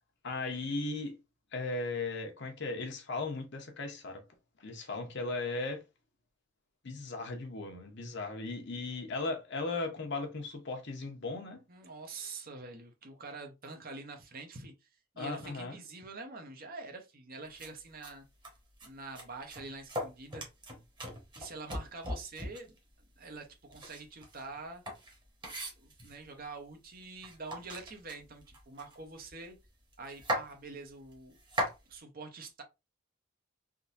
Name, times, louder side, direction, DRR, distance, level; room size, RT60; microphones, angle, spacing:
voice 1, 0.2-1.2 1.5-4.2 4.6-5.8 6.8-11.6 15.2-15.8, left 3 dB, 60° left, 1.0 m, -37 dB
voice 2, 11.7-14.9 15.1-18.3 18.8-20.4 21.4-24.8 25.7-29.6 30.0-31.4 31.9-32.6, right 3 dB, 50° right, 0.9 m, -46 dB
sound 1, 17.6-17.7 18.0-18.1 18.4-18.9 19.1-22.8 23.7-26.2 26.9-27.0 27.2-29.3 29.6-29.7 29.9-30.5 31.1-31.8, equal, 25° right, 1.2 m, -38 dB
3.7 x 2.7 x 2.6 m
head